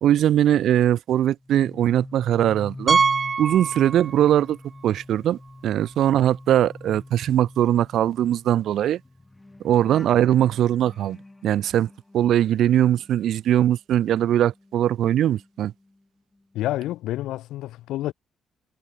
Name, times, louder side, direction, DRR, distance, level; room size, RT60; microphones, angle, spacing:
voice 1, 0.0-3.0 3.4-4.6 4.8-9.0 9.6-11.2 11.4-15.7, right 11 dB, 75° right, 1.4 m, -21 dB
sound 1, 1.4-13.6 13.9-16.0 16.3-16.7, left 2 dB, 15° left, 7.9 m, -45 dB
Piano, 2.9-4.5 4.7-4.9 5.5-5.6 5.8-5.9 8.0-8.1, right 5 dB, 35° right, 1.4 m, -24 dB
voice 2, 16.5-18.1, left 15 dB, 90° left, 6.8 m, -28 dB
cardioid pair, 90°, 0 cm